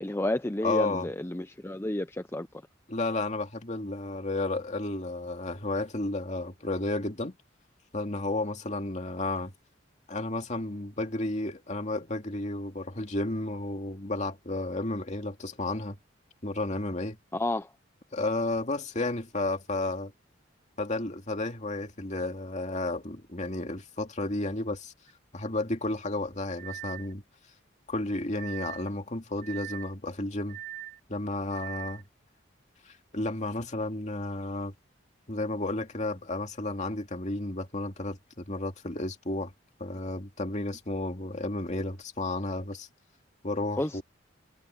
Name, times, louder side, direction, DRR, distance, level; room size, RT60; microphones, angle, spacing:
voice 1, 0.0-2.5 17.3-17.7 43.8-44.0, left 1 dB, 15° left, 0.6 m, -31 dB
voice 2, 0.6-1.1 2.9-7.3 7.9-9.5 10.1-16.0 16.4-17.2 18.1-20.1 20.8-24.9 25.3-27.2 27.9-30.6 31.1-32.0 32.9-34.7 35.3-39.5 39.8-42.9 43.4-44.0, left 2 dB, 40° left, 2.4 m, -32 dB
sound 1, 25.1-25.2 26.6-27.1 28.4-28.9 29.4-29.9 30.5-31.0 31.5-32.0, right 12 dB, 45° right, 1.0 m, -41 dB
head